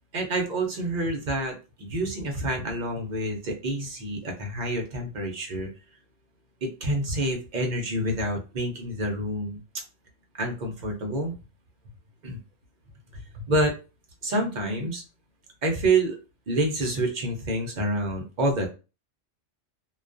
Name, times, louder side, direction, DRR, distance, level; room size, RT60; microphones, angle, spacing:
voice 1, 0.1-5.7 6.6-9.6 10.4-11.4 12.2-12.4 13.1-13.8 14.2-15.0 15.6-16.2 16.5-18.7, right 1 dB, 55° right, 2 dB, 0.5 m, -28 dB
2.2 x 2.2 x 2.4 m, 0.31 s
omnidirectional pair, 1.3 m